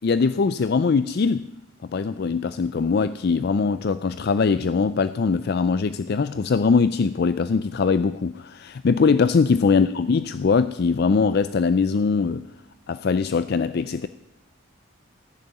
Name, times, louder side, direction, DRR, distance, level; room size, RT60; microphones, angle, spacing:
voice 1, 0.0-1.5 1.9-12.4 12.9-14.1, left 5 dB, 50° left, 13 dB, 0.4 m, -21 dB
14.5 x 7.0 x 9.5 m, 0.89 s
head